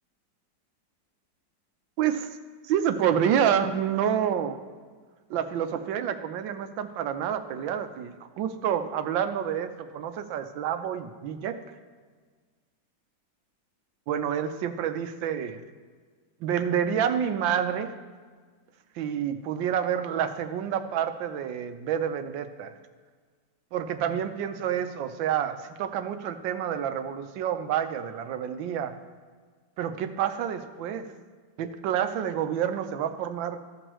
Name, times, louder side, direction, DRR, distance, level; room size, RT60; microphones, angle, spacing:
voice 1, 2.0-2.3 2.7-4.6 5.3-11.6 14.1-15.6 16.4-17.9 19.0-22.7 23.7-28.9 29.8-31.1 31.6-33.6, right 9 dB, 80° right, 8 dB, 1.4 m, -28 dB
14.0 x 6.2 x 3.0 m, 1.5 s
omnidirectional pair, 2.1 m